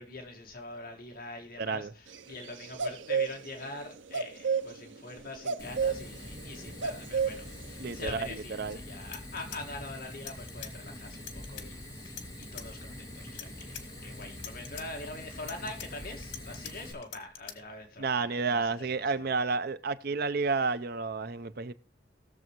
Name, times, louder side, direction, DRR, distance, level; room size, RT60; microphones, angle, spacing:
voice 1, 0.0-19.3, left 2 dB, 50° left, 1.9 m, -44 dB
voice 2, 1.6-1.9 7.8-8.3 8.6-8.8 18.0-21.7, right 4 dB, 55° right, 0.6 m, -30 dB
sound 1, 2.1-3.8 4.1-8.0, right 6 dB, 80° right, 0.8 m, -31 dB
Fire, 5.6-16.9, left 1 dB, 20° left, 2.5 m, -44 dB
sound 2, 9.0-10.7 11.1-11.7 12.1-12.7 13.2-13.8 14.2-14.9 15.3-16.7 17.0-17.6, left 9 dB, 90° left, 1.7 m, -44 dB
19.0 x 7.0 x 3.1 m
head